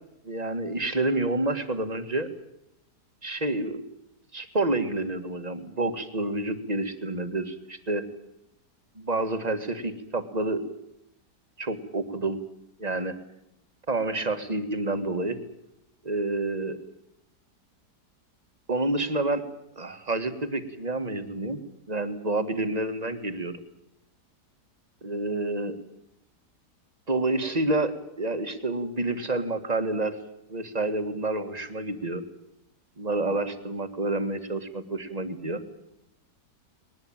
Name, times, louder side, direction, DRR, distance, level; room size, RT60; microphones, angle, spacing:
voice 1, 0.2-2.3 3.2-3.8 4.3-8.1 9.0-10.6 11.6-12.4 12.8-13.2 13.9-15.4 16.0-16.8 18.7-19.4 19.8-21.6 21.9-23.6 25.0-25.8 27.1-30.2 30.5-32.2 33.0-35.6, right 2 dB, 25° right, 9 dB, 2.0 m, -28 dB
21.5 x 20.0 x 9.0 m, 0.83 s
omnidirectional pair, 1.8 m